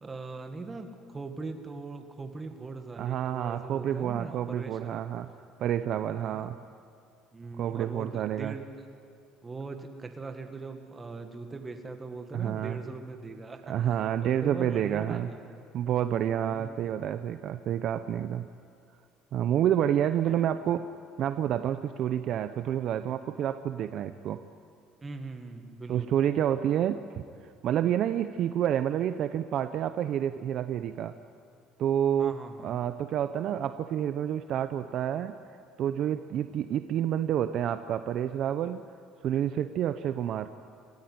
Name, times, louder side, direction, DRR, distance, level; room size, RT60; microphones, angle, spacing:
voice 1, 0.0-5.0 6.1-6.5 7.3-8.9 9.4-15.5 16.2-16.8 20.3-20.5 25.0-26.1 32.2-32.8, right 3 dB, 15° right, 6 dB, 1.8 m, -41 dB
voice 2, 3.0-5.3 5.6-6.6 7.6-8.5 12.3-12.8 13.6-15.3 15.7-18.4 19.3-20.9 21.2-24.4 25.9-31.2 31.8-32.3 32.6-35.4 35.8-38.8 39.2-40.5, right 10 dB, 45° right, 10 dB, 0.7 m, -29 dB
27.0 x 14.5 x 9.5 m, 2.3 s
cardioid pair, 160°, 0 cm